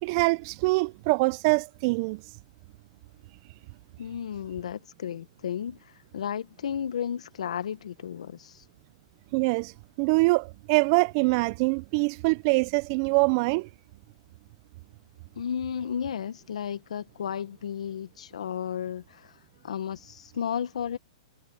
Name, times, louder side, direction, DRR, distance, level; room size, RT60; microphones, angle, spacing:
voice 1, 0.0-2.2 9.3-9.7 10.0-13.7, right 26 dB, 40° right, 0.6 m, -24 dB
voice 2, 4.0-5.8 6.1-8.6 15.3-19.3 19.6-21.0, left 8 dB, 75° left, 1.3 m, -33 dB
hypercardioid pair, 140°, 4 cm